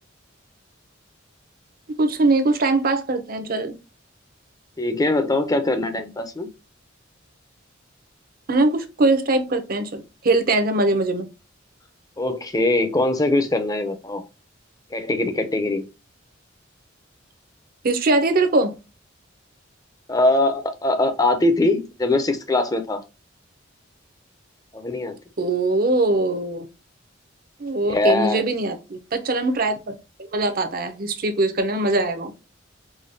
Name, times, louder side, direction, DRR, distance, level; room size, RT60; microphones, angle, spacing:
voice 1, 2.0-3.8 8.5-11.3 17.8-18.7 25.4-26.7 27.6-29.8 30.2-32.3, right 2 dB, 45° right, 0.7 m, -21 dB
voice 2, 4.8-6.5 12.2-14.2 14.9-15.9 20.1-23.0 24.7-25.2 27.9-28.4, left 2 dB, 20° left, 0.6 m, -22 dB
5.0 x 2.3 x 2.6 m
head